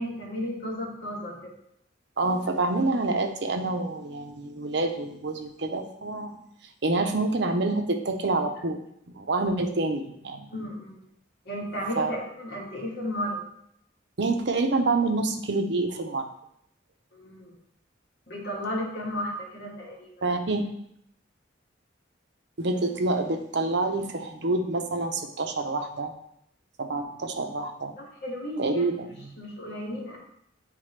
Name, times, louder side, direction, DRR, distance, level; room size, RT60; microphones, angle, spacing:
voice 1, 0.0-1.4 10.5-11.0 11.5-13.4 17.1-17.5 18.3-20.1 28.0-29.1 29.4-30.2, equal, 60° left, -3 dB, 1.9 m, -34 dB
voice 2, 2.2-6.4 6.8-8.8 9.1-10.5 12.0-12.1 14.2-16.3 20.2-20.6 22.6-26.1 26.8-27.9 28.6-29.4, right 2 dB, 65° right, 5 dB, 0.8 m, -27 dB
9.4 x 4.1 x 3.3 m, 0.73 s
head